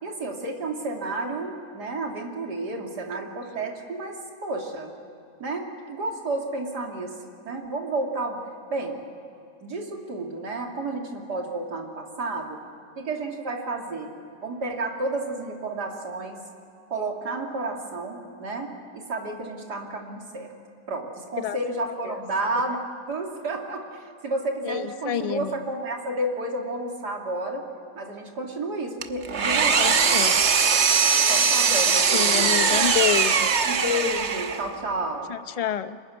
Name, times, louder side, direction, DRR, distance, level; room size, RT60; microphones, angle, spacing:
voice 1, 0.0-4.9 5.4-7.2 7.4-8.4 8.7-9.0 9.6-12.6 13.0-14.1 14.4-16.4 16.9-20.5 20.9-22.8 23.1-27.6 28.0-30.3 30.7-30.8 31.3-32.6 33.7-35.3, right 2 dB, 80° right, 1 dB, 3.4 m, -31 dB
voice 2, 24.6-25.6 29.8-30.7 31.7-33.5 35.3-36.0, left 9 dB, 70° left, 11 dB, 0.3 m, -29 dB
Engine, 29.0-34.7, right 6 dB, 45° right, 1.3 m, -21 dB
25.5 x 21.5 x 9.8 m, 2.6 s
omnidirectional pair, 1.7 m